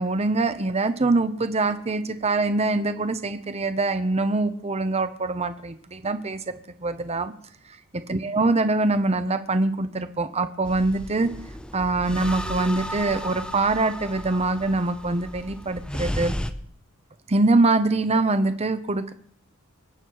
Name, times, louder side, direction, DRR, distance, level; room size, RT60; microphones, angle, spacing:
voice 1, 0.0-7.3 7.9-11.3 11.7-16.4 17.3-19.1, right 2 dB, 30° right, 10 dB, 0.8 m, -24 dB
sound 1, 10.6-16.5, equal, 5° left, 0.7 m, -34 dB
24.5 x 8.4 x 4.7 m, 0.63 s
head